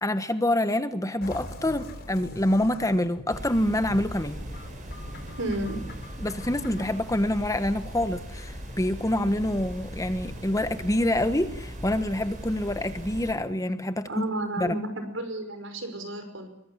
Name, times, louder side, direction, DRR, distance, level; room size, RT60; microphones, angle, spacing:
voice 1, 0.0-4.4 6.2-14.2 14.6-14.7, left 1 dB, 15° left, 10 dB, 1.3 m, -26 dB
sound 1, 1.2-7.0, left 1 dB, 55° left, 6.2 m, -43 dB
sound 2, 3.3-13.3, equal, 40° right, 7.2 m, -39 dB
voice 2, 5.4-5.8 14.1-16.5, right 1 dB, 75° right, 7 dB, 5.5 m, -32 dB
23.0 x 20.5 x 9.9 m, 0.81 s
head